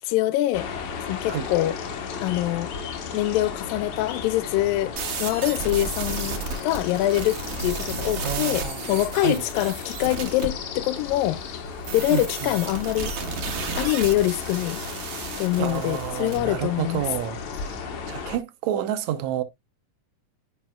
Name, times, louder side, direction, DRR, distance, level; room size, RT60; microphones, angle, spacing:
voice 1, 0.1-0.7 1.1-1.8 2.2-2.7 3.1-4.9 5.2-11.4 11.9-13.1 13.7-14.8 15.4-17.0, left 15 dB, 85° left, 2.3 m, -24 dB
sound 1, 0.5-18.4, left 5 dB, 65° left, 2.3 m, -35 dB
sound 2, 5.0-10.5 11.8-16.4, right 5 dB, 55° right, 2.0 m, -33 dB
voice 2, 8.2-9.4 12.1-12.5 15.6-19.4, right 11 dB, 70° right, 1.9 m, -30 dB
10.0 x 5.6 x 2.3 m
omnidirectional pair, 4.0 m